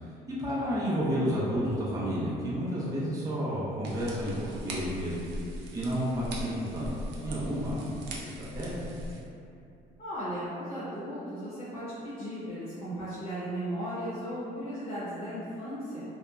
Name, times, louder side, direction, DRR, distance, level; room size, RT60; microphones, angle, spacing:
voice 1, 0.3-5.2 5.7-6.9 7.2-7.9 8.2-8.8, equal, 20° right, -8 dB, 0.6 m, -31 dB
sound 1, 3.8-9.2, equal, 75° right, 0.5 m, -40 dB
voice 2, 10.0-16.0, equal, 35° left, -12 dB, 0.8 m, -36 dB
2.8 x 2.1 x 2.4 m, 2.6 s
cardioid pair, 110°, 17 cm